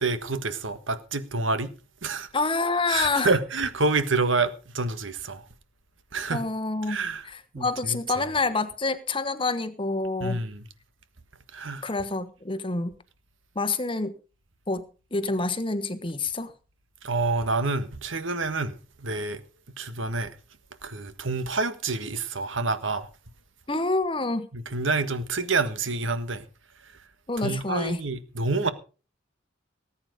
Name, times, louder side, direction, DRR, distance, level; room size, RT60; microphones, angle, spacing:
voice 1, 0.0-1.7 2.0-2.3 2.9-5.4 6.1-6.4 6.9-7.2 7.5-8.2 10.2-10.6 11.5-11.9 17.0-19.4 19.8-20.3 20.8-23.1 24.5-26.4 27.4-28.7, right 3 dB, 70° right, 1.5 m, -28 dB
voice 2, 2.3-3.3 6.3-10.4 11.8-12.9 13.5-14.1 14.7-16.5 23.7-24.5 27.3-28.0, left 3 dB, 25° left, 1.3 m, -27 dB
19.0 x 8.9 x 5.2 m
head